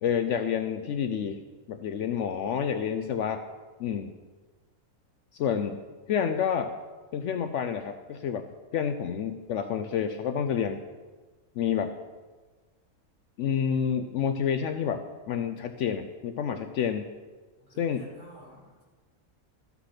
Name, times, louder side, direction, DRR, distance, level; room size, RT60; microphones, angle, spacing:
voice 1, 0.0-1.4 1.7-3.4 3.8-4.2 5.3-5.8 6.1-6.7 7.1-8.5 8.7-10.8 11.6-11.9 13.4-17.0 17.8-18.0, left 8 dB, 70° left, 8 dB, 0.8 m, -29 dB
voice 2, 17.6-18.8, equal, 35° right, -7 dB, 4.1 m, -51 dB
13.0 x 5.9 x 5.7 m, 1.3 s
omnidirectional pair, 1.4 m